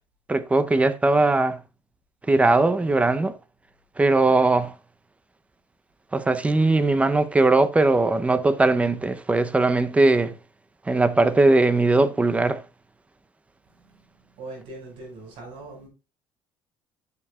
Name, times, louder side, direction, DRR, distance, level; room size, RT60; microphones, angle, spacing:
voice 1, 0.3-1.6 2.3-3.3 4.0-4.7 6.1-10.4 10.9-12.6, right 2 dB, 15° right, 0.7 m, -20 dB
voice 2, 14.4-15.9, right 2 dB, 85° right, 5.5 m, -40 dB
11.5 x 7.0 x 2.4 m
cardioid pair, 130°, 9 cm